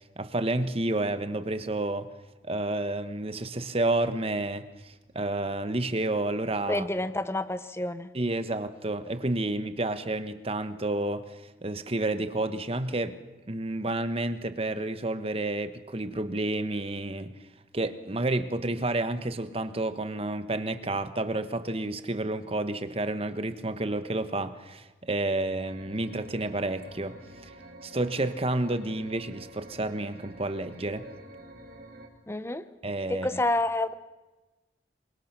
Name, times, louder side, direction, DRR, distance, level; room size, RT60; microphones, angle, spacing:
voice 1, 0.2-2.1 2.4-6.9 8.1-13.2 13.5-17.3 17.7-27.5 27.8-31.1 32.8-33.3, right 2 dB, 35° right, 11 dB, 1.3 m, -30 dB
voice 2, 6.7-8.1 32.3-32.6 33.1-33.9, left 2 dB, 15° left, 13 dB, 1.0 m, -28 dB
sound 1, 25.6-32.1, right 1 dB, 55° right, 4.7 m, -48 dB
27.5 x 23.5 x 6.1 m, 1.1 s
head